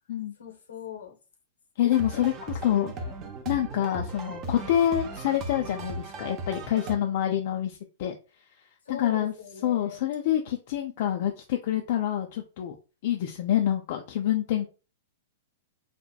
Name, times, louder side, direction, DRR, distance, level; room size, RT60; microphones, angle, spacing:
voice 1, 0.4-1.1 1.8-3.1 4.4-4.7 8.9-10.0, left 8 dB, 80° left, 0.7 m, -41 dB
voice 2, 1.8-2.3 2.6-2.9 3.5-8.2 8.9-9.3 9.6-12.7 13.0-14.7, left 11 dB, 55° left, 0.3 m, -26 dB
sound 1, 1.9-7.0, right 2 dB, 35° right, 0.5 m, -37 dB
2.8 x 2.1 x 2.2 m
hypercardioid pair, 105°, 0 cm